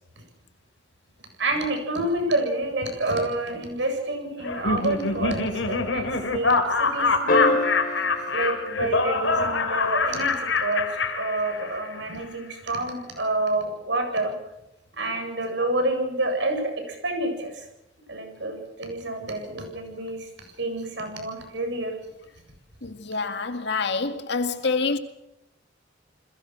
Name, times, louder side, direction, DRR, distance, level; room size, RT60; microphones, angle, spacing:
voice 1, 1.4-7.6 8.3-14.3 14.9-17.7 18.1-20.3 20.6-21.9, right 2 dB, 65° right, 7.9 m, -28 dB
Laughter, 4.4-11.9, left 3 dB, 80° left, 3.5 m, -25 dB
sound 1, 7.3-9.8 12.0-12.1, left 2 dB, 45° left, 2.2 m, -27 dB
voice 2, 22.8-25.0, left 4 dB, 65° left, 2.1 m, -26 dB
30.0 x 21.0 x 6.2 m
head